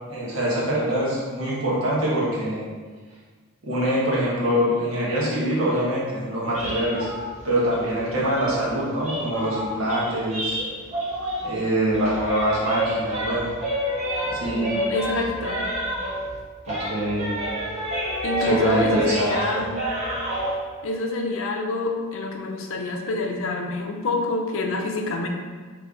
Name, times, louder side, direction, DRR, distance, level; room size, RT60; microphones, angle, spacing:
voice 1, 0.1-2.6 3.6-7.1 7.4-10.6 11.4-13.5 14.3-14.8 16.7-17.4 18.5-19.3, equal, 70° right, -6 dB, 1.3 m, -24 dB
sound 1, 6.5-11.6 11.9-16.4 16.6-20.5, right 1 dB, 30° right, 1.1 m, -29 dB
voice 2, 14.5-15.7 18.2-19.8 20.8-25.3, left 2 dB, 65° left, 3 dB, 0.5 m, -27 dB
3.5 x 3.4 x 3.8 m, 1.5 s
head